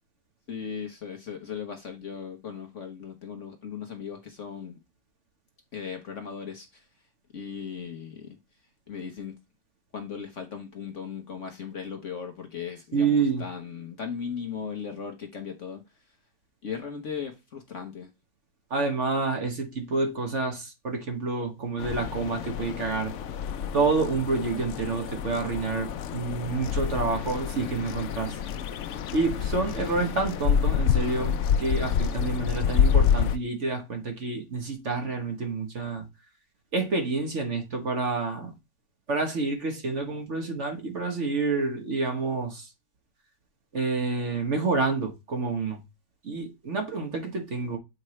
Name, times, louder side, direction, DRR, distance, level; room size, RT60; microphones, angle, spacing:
voice 1, 0.5-4.8 5.7-6.9 7.3-8.4 8.9-9.3 9.9-16.2 16.6-18.1, left 6 dB, 50° left, 1.1 m, -37 dB
voice 2, 12.9-13.4 18.7-23.1 23.7-28.4 29.1-36.0 36.7-38.5 39.1-42.7 43.7-45.8 46.2-47.8, right 4 dB, 45° right, 1.3 m, -28 dB
sound 1, 21.8-33.4, left 8 dB, 75° left, 0.6 m, -28 dB
7.6 x 4.5 x 3.1 m
omnidirectional pair, 1.9 m